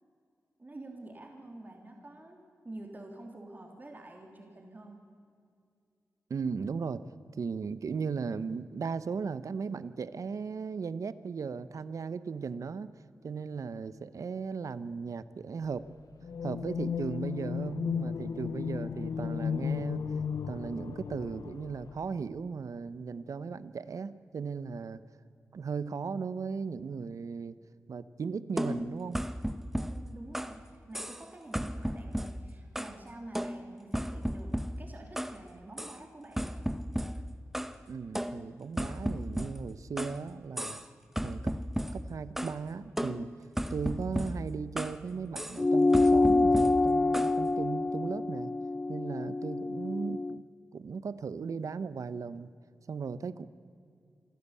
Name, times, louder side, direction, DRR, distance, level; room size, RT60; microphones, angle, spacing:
voice 1, 0.6-5.0 29.9-36.6, right 2 dB, 30° right, 1 dB, 3.3 m, -48 dB
voice 2, 6.3-7.0 7.4-12.9 13.2-15.8 16.4-20.0 20.5-25.0 25.5-27.6 27.9-29.2 37.9-40.8 41.2-41.6 41.9-43.3 43.7-48.5 48.9-50.4 50.7-52.5 52.9-53.5, right 5 dB, 70° right, 15 dB, 0.8 m, -37 dB
sound 1, 16.2-22.2, left 7 dB, 90° left, 0.7 m, -35 dB
sound 2, 28.6-30.6 30.9-31.3 31.5-33.0 33.3-35.4 35.8-36.0 36.4-37.8 38.1-40.2 40.6-40.9 41.2-42.6 43.0-45.0 45.3-45.6 45.9-47.4, equal, 5° right, 0.9 m, -35 dB
sound 3, 45.6-50.4, left 2 dB, 25° left, 0.4 m, -26 dB
27.0 x 12.5 x 8.4 m, 2.4 s
cardioid pair, 65°, 6 cm